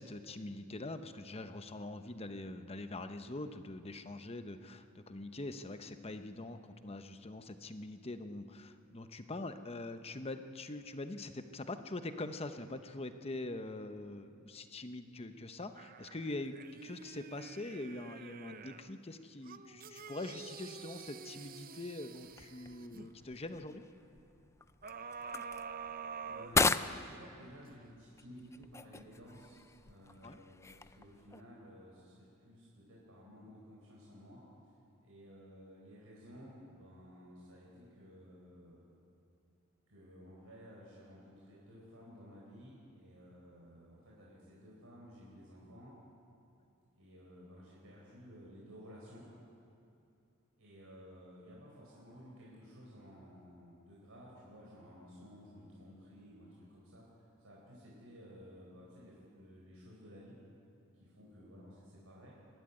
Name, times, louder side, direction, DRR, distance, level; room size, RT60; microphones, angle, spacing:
voice 1, 0.0-16.6 16.8-23.8 30.2-30.4, left 2 dB, 30° left, 8 dB, 0.9 m, -43 dB
sound 1, 15.8-18.9 19.4-23.1 24.8-27.2 27.7-27.8, right 6 dB, 45° right, 0.7 m, -48 dB
sound 2, 22.2-31.4, left 3 dB, 15° left, 0.4 m, -39 dB
voice 2, 26.2-34.4 35.0-38.8 39.9-45.9 47.0-49.3 50.6-57.1 57.4-60.4 61.0-62.3, equal, 90° right, -5 dB, 4.3 m, -55 dB
23.5 x 13.0 x 9.7 m, 2.5 s
head